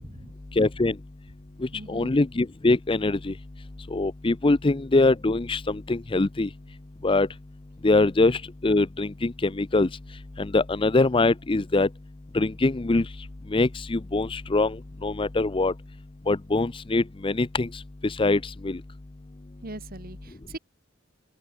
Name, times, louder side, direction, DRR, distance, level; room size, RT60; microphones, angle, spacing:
voice 1, 0.0-0.3 1.7-2.1 19.6-20.6, right 2 dB, 45° right, 2.2 m, -41 dB
voice 2, 0.6-0.9 1.9-3.3 3.9-6.5 7.0-7.3 7.8-9.9 10.4-11.9 12.3-13.0 13.5-14.8 15.0-15.7 16.3-17.7 18.0-18.8, left 2 dB, 25° left, 0.5 m, -23 dB
open air
head